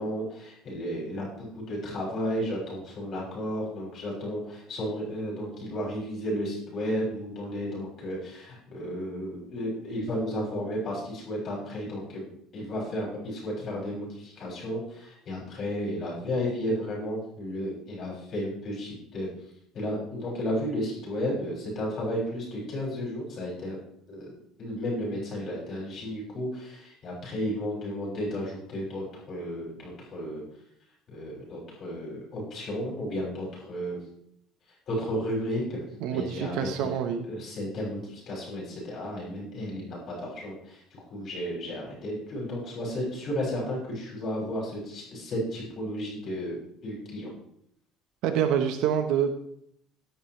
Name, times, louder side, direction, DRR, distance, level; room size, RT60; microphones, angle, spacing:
voice 1, 0.0-12.3 12.5-19.3 19.7-23.7 24.1-24.3 24.6-30.4 31.1-34.0 34.9-36.9 37.3-47.3, equal, 35° left, -4 dB, 6.7 m, -33 dB
voice 2, 36.0-37.3 48.2-49.3, right 8 dB, 65° right, 7 dB, 1.1 m, -26 dB
18.0 x 11.0 x 3.3 m, 0.71 s
cardioid pair, 175°, 0 cm